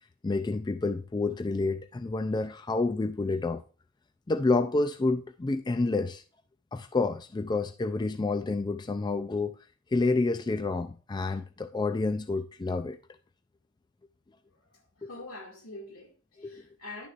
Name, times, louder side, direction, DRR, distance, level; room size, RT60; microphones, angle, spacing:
voice 1, 0.2-3.6 4.3-6.2 6.7-9.5 9.9-13.0 15.0-15.1 16.4-16.6, left 3 dB, 20° left, 0.3 m, -29 dB
voice 2, 14.5-17.1, left 2 dB, 80° left, 2.1 m, -45 dB
11.0 x 6.6 x 2.5 m
head